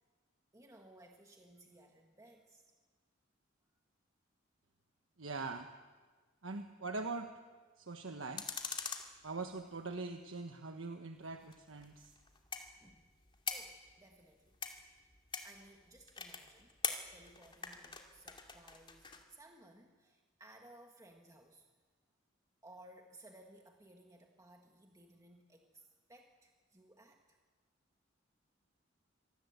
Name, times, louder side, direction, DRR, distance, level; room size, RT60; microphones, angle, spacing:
voice 1, 0.5-2.7 12.8-13.1 13.5-14.6 15.4-16.8 17.1-21.7 22.6-27.4, right 1 dB, 15° right, 2 dB, 1.7 m, -60 dB
voice 2, 5.2-5.7 6.4-7.3 7.8-8.5 9.2-12.1, right 3 dB, 80° right, 5 dB, 1.3 m, -42 dB
sound 1, 8.4-9.9 11.4-19.2, left 5 dB, 25° left, 2.5 m, -44 dB
26.0 x 19.0 x 8.2 m, 1.4 s
head